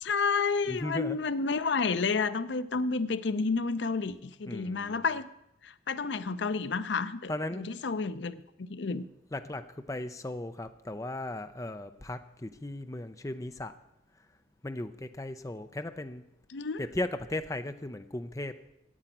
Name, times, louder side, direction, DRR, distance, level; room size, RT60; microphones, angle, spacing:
voice 1, 0.0-5.3 5.6-9.1 16.5-16.8, left 4 dB, 70° left, 15 dB, 0.6 m, -30 dB
voice 2, 0.7-1.2 4.5-5.0 7.3-7.6 8.9-9.0 9.3-13.7 14.6-16.2 16.8-18.6, left 1 dB, 15° left, 9 dB, 0.5 m, -37 dB
10.0 x 8.7 x 9.0 m, 0.86 s
head